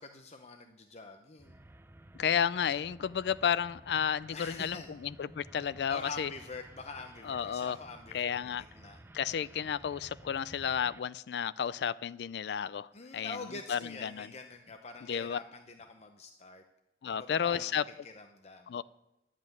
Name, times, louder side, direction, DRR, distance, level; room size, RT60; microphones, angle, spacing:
voice 1, 0.0-1.6 4.3-4.9 5.9-9.0 9.3-9.8 12.9-16.6 17.1-18.8, left 3 dB, 40° left, 6 dB, 0.7 m, -46 dB
sound 1, 1.4-11.0, right 1 dB, 15° right, 0.4 m, -54 dB
voice 2, 2.1-6.3 7.3-7.8 8.1-8.6 9.1-12.9 13.1-13.4 13.7-14.3 15.1-15.4 17.0-17.8 18.7-18.8, left 8 dB, 65° left, 17 dB, 0.3 m, -32 dB
11.0 x 7.5 x 9.2 m, 0.92 s
head